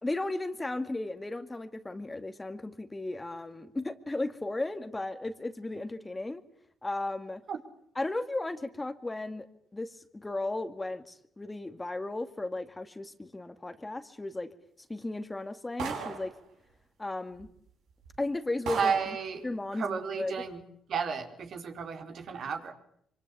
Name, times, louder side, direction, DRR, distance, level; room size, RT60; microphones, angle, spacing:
voice 1, 0.0-6.4 6.8-7.4 8.0-9.5 9.7-14.5 14.9-16.3 17.0-17.5 18.2-19.2 19.4-20.3, left 2 dB, 15° left, 9 dB, 2.2 m, -35 dB
sound 1, 15.8-16.4 17.4-17.5 18.0-18.2 18.7-19.2, right 6 dB, 85° right, 7.8 m, -36 dB
voice 2, 18.7-19.5 19.8-20.6 20.9-22.7, right 6 dB, 65° right, 4 dB, 4.8 m, -32 dB
25.0 x 25.0 x 8.5 m, 0.70 s
cardioid pair, 90°, 0 cm